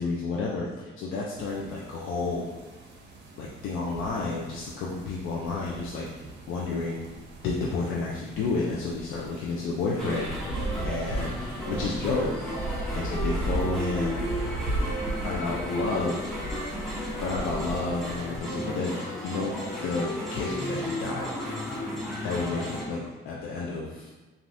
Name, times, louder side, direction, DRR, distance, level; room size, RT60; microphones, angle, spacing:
voice 1, 0.0-2.5 3.4-7.0 7.4-10.3 10.8-11.4 11.7-12.3 12.9-14.2 15.2-16.3 17.2-19.0 19.2-19.5 19.8-21.3 22.2-24.1, left 3 dB, 90° left, -4 dB, 0.4 m, -31 dB
sound 1, 1.3-18.4, right 2 dB, 65° right, 0.6 m, -37 dB
sound 2, 10.0-22.8, equal, ahead, 0.9 m, -34 dB
3.3 x 2.4 x 2.6 m, 1.2 s
cardioid pair, 90°, 20 cm